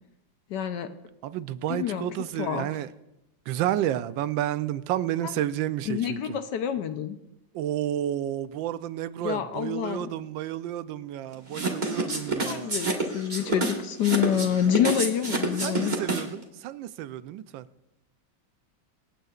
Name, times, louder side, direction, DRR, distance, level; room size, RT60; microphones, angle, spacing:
voice 1, 0.5-0.9 1.7-2.1 2.4-2.7 5.2-5.3 5.9-7.2 9.2-10.1 12.5-15.9, left 9 dB, 70° left, 1.3 m, -27 dB
voice 2, 1.2-2.9 3.5-6.4 7.5-12.8 15.6-17.6, right 12 dB, 80° right, 1.3 m, -31 dB
sound 1, 11.5-16.4, right 2 dB, 25° right, 1.4 m, -28 dB
25.5 x 9.4 x 2.4 m
omnidirectional pair, 2.1 m